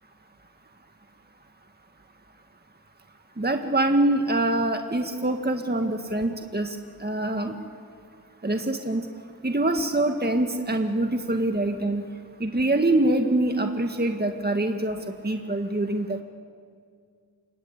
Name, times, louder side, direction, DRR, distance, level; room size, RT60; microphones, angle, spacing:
voice 1, 3.4-7.6 8.4-9.1 9.4-12.1 12.4-16.2, right 1 dB, 25° right, 5 dB, 1.9 m, -25 dB
28.5 x 21.5 x 8.9 m, 2.2 s
cardioid pair, 45°, 41 cm